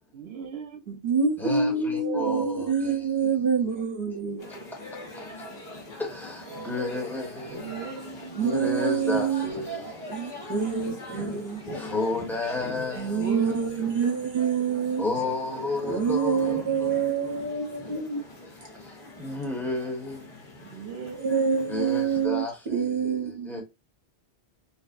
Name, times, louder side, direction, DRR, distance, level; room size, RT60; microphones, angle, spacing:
voice 1, 0.1-0.9 1.4-2.7 3.2-3.3 4.1-4.6 7.4-8.6 10.5-10.8 11.2-11.4 13.1-13.9 16.3-16.6 20.6-21.2 23.5-23.6, right 6 dB, 75° right, 1.0 m, -36 dB
voice 2, 0.9-4.5 8.3-9.5 10.1-11.6 12.9-15.0 15.8-18.2 21.2-22.4 22.7-23.6, right 6 dB, 60° right, 1.2 m, -26 dB
voice 3, 1.4-3.0 6.0-7.6 8.4-9.9 11.8-13.2 15.0-16.9 19.2-20.2 21.7-23.6, left 2 dB, ahead, 0.9 m, -32 dB
sound 1, 4.4-22.3, left 1 dB, 55° left, 1.2 m, -41 dB
3.9 x 2.0 x 2.5 m
omnidirectional pair, 1.1 m